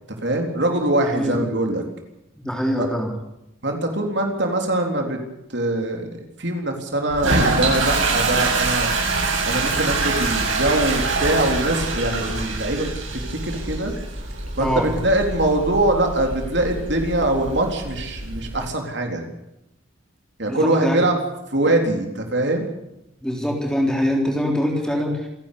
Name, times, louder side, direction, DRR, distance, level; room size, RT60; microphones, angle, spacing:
voice 1, 0.2-1.8 2.8-2.9 3.6-5.2 5.5-8.9 9.5-12.9 13.3-13.9 14.6-19.3 20.4-21.2 21.5-22.7, right 1 dB, 55° right, 3 dB, 3.8 m, -23 dB
voice 2, 1.0-1.4 2.4-3.1 14.6-14.9 20.5-21.0 23.2-25.3, equal, 5° left, 1 dB, 3.7 m, -23 dB
Toilet flush, 7.1-18.5, right 3 dB, 70° right, 7.7 m, -25 dB
27.5 x 12.0 x 8.5 m, 0.85 s
head